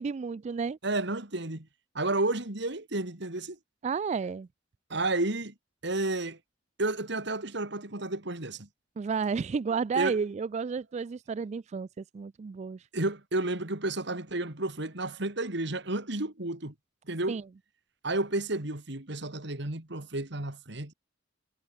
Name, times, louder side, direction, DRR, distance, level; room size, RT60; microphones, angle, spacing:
voice 1, 0.0-0.8 3.8-4.5 9.0-12.9 17.3-17.4, right 5 dB, 35° right, 0.3 m, -31 dB
voice 2, 0.8-1.7 1.9-3.6 4.9-5.5 5.8-6.4 6.8-8.7 9.9-10.1 12.9-16.7 17.1-17.4 18.0-20.9, right 2 dB, 65° right, 2.8 m, -31 dB
head